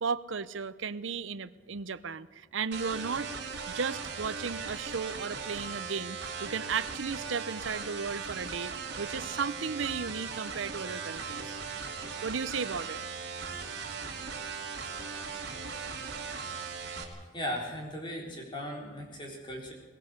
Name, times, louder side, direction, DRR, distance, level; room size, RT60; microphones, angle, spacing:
voice 1, 0.0-3.3 3.7-11.5 12.2-13.0, right 5 dB, 80° right, 13 dB, 0.7 m, -35 dB
sound 1, 2.7-17.0, right 5 dB, 60° right, 3.1 m, -38 dB
voice 2, 17.3-19.7, equal, 25° left, -1 dB, 4.2 m, -37 dB
22.0 x 19.5 x 6.7 m, 1.3 s
head